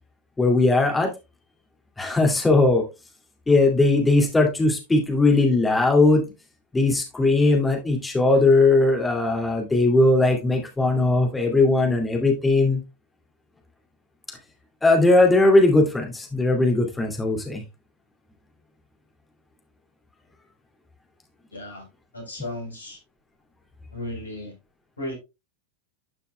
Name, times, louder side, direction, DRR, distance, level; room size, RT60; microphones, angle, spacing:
voice 1, 0.4-1.1 2.0-2.8 3.5-6.3 6.7-12.8 14.8-17.6, left 2 dB, 10° left, 2 dB, 2.5 m, -19 dB
voice 2, 21.5-21.8 22.1-23.0 23.9-24.5 25.0-25.1, left 1 dB, 90° left, 0 dB, 4.2 m, -34 dB
12.5 x 5.5 x 2.3 m, 0.24 s
hypercardioid pair, 90°, 0 cm